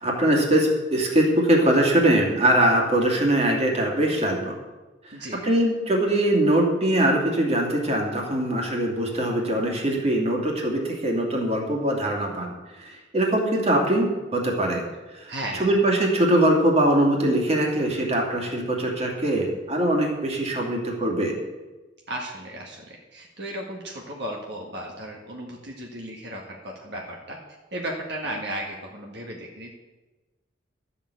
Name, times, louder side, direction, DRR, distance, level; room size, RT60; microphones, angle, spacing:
voice 1, 0.0-4.6 5.0-14.8 15.1-15.3 15.6-21.3, right 1 dB, 35° right, 0 dB, 2.7 m, -22 dB
voice 2, 5.1-5.4 15.3-15.7 22.1-27.4 27.7-29.7, right 1 dB, 60° right, -1 dB, 1.8 m, -35 dB
13.0 x 7.1 x 8.4 m, 1.2 s
head